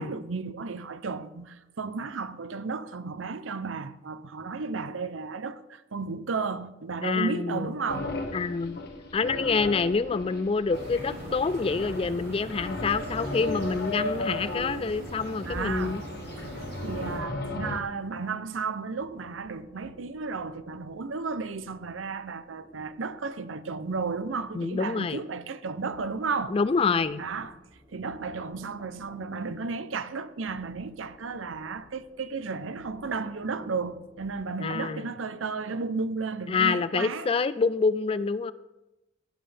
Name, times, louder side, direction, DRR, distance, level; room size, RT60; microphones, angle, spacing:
voice 1, 0.0-8.2 15.3-16.0 16.8-26.6 27.2-27.6 27.9-37.3, right 4 dB, 85° right, 0.7 m, -33 dB
voice 2, 7.0-7.7 8.3-8.8 9.1-16.0 24.5-25.2 26.5-27.2 34.6-35.1 36.5-38.5, left 4 dB, 30° left, 0.3 m, -27 dB
sound 1, 7.9-17.8, left 2 dB, 55° left, 1.3 m, -36 dB
sound 2, 10.7-17.2, right 1 dB, 55° right, 4.4 m, -40 dB
sound 3, 16.9-35.0, right 1 dB, 10° right, 3.1 m, -55 dB
17.5 x 7.6 x 3.4 m
head